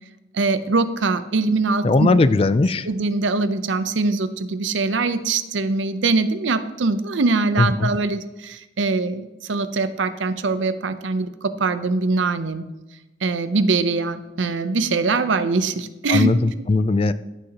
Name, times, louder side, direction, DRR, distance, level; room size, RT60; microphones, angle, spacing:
voice 1, 0.3-2.1 2.8-12.7 13.2-16.3, right 3 dB, 80° right, 12 dB, 0.6 m, -22 dB
voice 2, 1.8-2.9 7.6-7.9 16.1-17.1, left 3 dB, 30° left, 14 dB, 0.3 m, -18 dB
14.5 x 6.7 x 2.9 m, 1.0 s
head